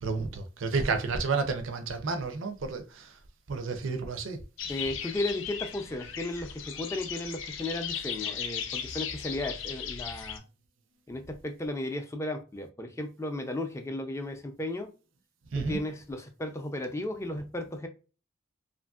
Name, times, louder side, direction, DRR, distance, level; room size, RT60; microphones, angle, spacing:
voice 1, 0.0-3.2 3.5-4.4 15.5-15.8, right 4 dB, 75° right, 0.5 m, -31 dB
sound 1, 4.6-10.4, left 7 dB, 75° left, 0.5 m, -37 dB
voice 2, 4.7-10.4 11.1-14.9 15.6-17.9, left 1 dB, 15° left, 0.4 m, -35 dB
2.9 x 2.5 x 2.3 m
head